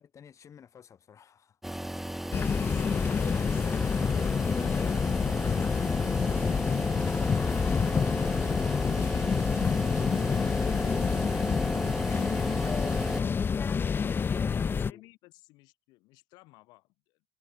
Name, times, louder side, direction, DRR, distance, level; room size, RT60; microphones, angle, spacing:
voice 1, 0.0-1.6 8.3-13.2 13.9-14.7 14.9-15.0, left 8 dB, 45° left, 5.5 m, -52 dB
sound 1, 1.6-13.2, right 1 dB, 5° right, 0.8 m, -35 dB
sound 2, 2.3-14.9, left 6 dB, 30° left, 0.5 m, -28 dB
voice 2, 2.6-3.8 14.7-17.2, left 22 dB, 80° left, 7.1 m, -55 dB
supercardioid pair, 75°, 7 cm